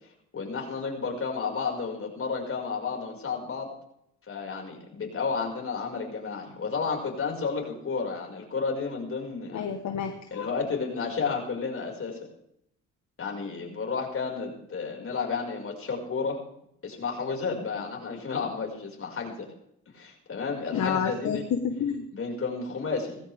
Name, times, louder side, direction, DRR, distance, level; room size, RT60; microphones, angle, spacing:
voice 1, 0.3-3.7 4.3-9.7 10.3-12.2 13.2-16.4 16.8-19.5 19.9-21.5 22.1-23.2, left 5 dB, 45° left, 0 dB, 5.8 m, -32 dB
voice 2, 9.5-10.5 20.7-22.0, left 7 dB, 65° left, 6 dB, 1.5 m, -29 dB
19.5 x 16.0 x 3.6 m, 0.74 s
cardioid pair, 90°, 30 cm